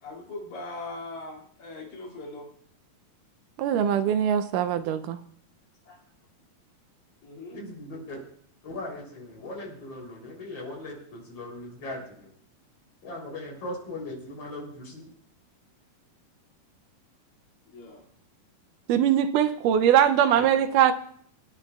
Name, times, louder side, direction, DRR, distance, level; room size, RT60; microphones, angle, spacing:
voice 1, 0.0-2.5 5.9-6.0 7.2-7.7 17.7-18.1, left 2 dB, 80° left, -1 dB, 4.0 m, -40 dB
voice 2, 3.6-5.2 18.9-20.9, right 9 dB, 80° right, 10 dB, 2.1 m, -22 dB
voice 3, 7.5-8.2 8.6-12.3 13.0-15.1 20.3-20.5, left 1 dB, 45° left, -1 dB, 4.1 m, -39 dB
24.5 x 9.8 x 2.3 m, 0.62 s
omnidirectional pair, 3.8 m